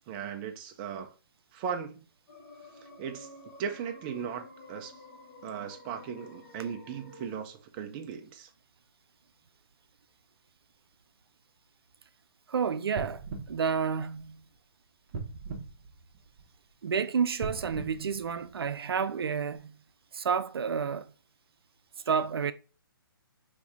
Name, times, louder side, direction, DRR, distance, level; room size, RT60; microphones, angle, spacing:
voice 1, 0.1-1.1 1.5-2.0 3.0-3.3 3.6-4.9 5.4-8.5, right 7 dB, 20° right, 0.3 m, -37 dB
sound 1, 2.3-7.3, left 2 dB, 45° left, 0.9 m, -51 dB
voice 2, 12.5-13.2 13.5-14.4 16.8-19.7 20.1-21.1 22.1-22.5, right 6 dB, 90° right, 0.4 m, -30 dB
sound 2, 12.9-14.6 15.1-16.7 17.3-19.0 19.6-19.7, right 4 dB, 35° right, 0.9 m, -41 dB
3.5 x 2.6 x 3.4 m
hypercardioid pair, 150°, 12 cm